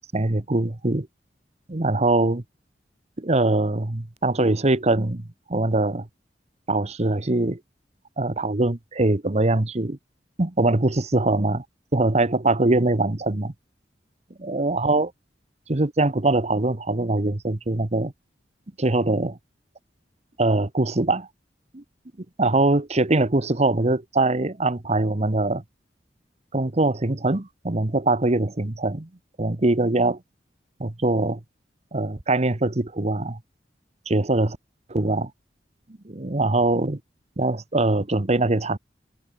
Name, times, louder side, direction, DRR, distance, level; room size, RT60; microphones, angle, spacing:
voice 1, 0.1-1.1 1.7-2.4 3.2-5.2 5.5-6.1 6.7-7.6 8.2-10.0 10.4-11.6 11.9-13.5 14.4-15.1 15.7-18.1 18.8-19.4 20.4-21.3 21.7-21.8 22.4-25.6 26.5-29.1 29.4-30.2 30.8-31.4 31.9-33.4 34.1-34.6 34.9-35.3 36.0-37.0 37.4-38.8, right 2 dB, 40° right, 1.2 m, -22 dB
head